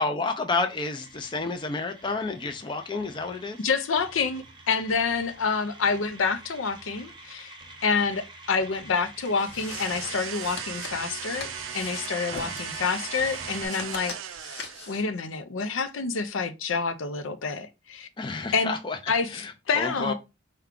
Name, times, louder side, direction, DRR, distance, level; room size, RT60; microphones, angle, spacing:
voice 1, 0.0-3.6 12.3-12.6 18.2-19.0 19.3-20.1, left 3 dB, 25° left, 0.4 m, -30 dB
sound 1, 0.5-13.7, right 2 dB, 25° right, 0.7 m, -45 dB
voice 2, 3.6-7.6 7.8-14.1 14.9-18.1 18.5-18.7 19.1-20.1, left 5 dB, 80° left, 0.5 m, -28 dB
sound 2, 9.2-15.0, left 4 dB, 60° left, 0.9 m, -43 dB
sound 3, 9.5-15.1, right 10 dB, 85° right, 0.4 m, -38 dB
4.6 x 2.3 x 3.6 m
head